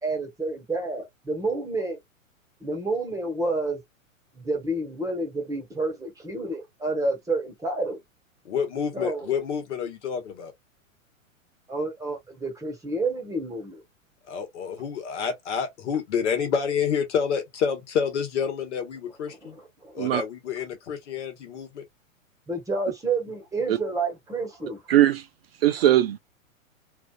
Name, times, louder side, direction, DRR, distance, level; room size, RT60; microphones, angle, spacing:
voice 1, 0.0-2.0 2.6-3.8 4.4-8.0 8.9-9.3 11.7-13.8 19.4-19.9 22.5-24.8, right 2 dB, 10° right, 1.2 m, -29 dB
voice 2, 8.4-10.5 14.3-19.6 19.9-21.8, left 7 dB, 60° left, 1.2 m, -28 dB
voice 3, 24.9-25.2 25.6-26.2, right 13 dB, 50° right, 0.4 m, -19 dB
3.2 x 2.4 x 2.3 m
figure-of-eight pair, 105°, 41 cm